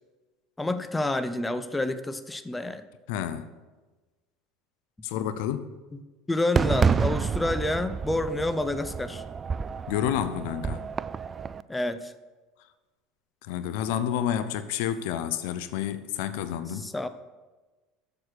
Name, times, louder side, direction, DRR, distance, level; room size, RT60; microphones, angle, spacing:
voice 1, 0.6-2.9 5.9-6.0 6.3-9.2 11.7-12.1 16.7-17.1, left 2 dB, 10° left, 0.6 m, -29 dB
voice 2, 3.1-3.5 5.0-5.7 9.9-10.8 13.5-16.9, left 10 dB, 70° left, 0.5 m, -29 dB
Fireworks, 6.6-11.6, right 6 dB, 30° right, 0.3 m, -29 dB
7.4 x 6.6 x 6.4 m
hypercardioid pair, 80°, 0 cm